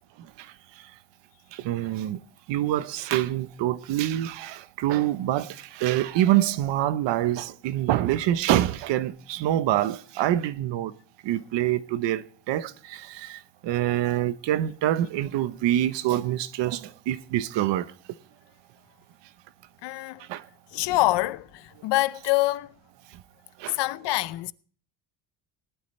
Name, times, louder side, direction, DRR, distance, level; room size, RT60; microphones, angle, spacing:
voice 1, 1.5-2.2 2.5-10.9 11.2-17.9 20.3-20.4 23.6-23.8, right 13 dB, 85° right, 1.0 m, -26 dB
voice 2, 19.8-20.3 20.7-22.7 23.7-24.5, left 18 dB, 75° left, 0.7 m, -25 dB
18.5 x 12.0 x 3.2 m
cardioid pair, 150°, 42 cm